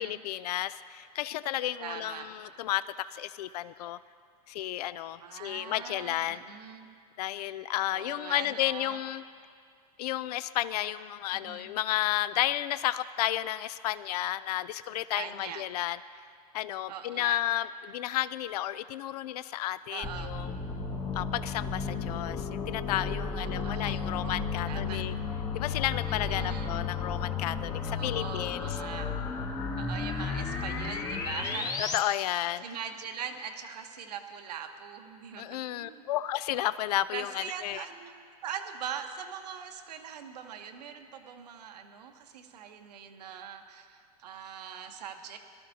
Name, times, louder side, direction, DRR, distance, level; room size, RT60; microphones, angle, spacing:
voice 1, 0.0-2.8 3.1-4.0 4.5-6.4 7.2-9.2 10.0-16.0 16.5-20.5 21.1-25.1 25.5-28.8 31.8-32.6 35.4-37.8, left 14 dB, 75° left, 15 dB, 0.4 m, -32 dB
voice 2, 1.8-2.3 5.2-6.9 7.9-9.0 11.3-11.7 15.1-15.6 16.9-17.4 19.9-20.3 23.4-23.9 24.2-24.4 24.7-25.0 26.1-26.8 27.9-29.1 29.7-32.0 32.6-36.0 37.1-38.1 38.4-45.4, right 8 dB, 80° right, 5 dB, 1.1 m, -42 dB
sound 1, 20.0-32.0, left 5 dB, 20° left, 0.9 m, -33 dB
22.0 x 12.5 x 2.8 m, 2.2 s
supercardioid pair, 135°, 20 cm